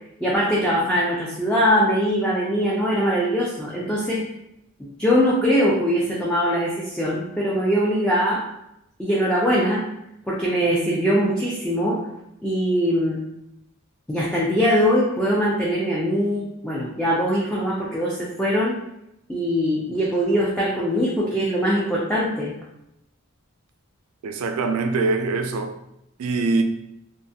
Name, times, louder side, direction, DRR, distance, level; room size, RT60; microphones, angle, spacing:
voice 1, 0.2-4.2 4.8-8.4 9.0-9.8 10.3-12.0 12.4-13.2 14.1-18.8 19.3-22.5, equal, 5° left, 0.3 m, -22 dB
voice 2, 24.2-25.7 26.2-26.6, right 3 dB, 75° right, 0.3 m, -23 dB
2.4 x 2.3 x 2.6 m
head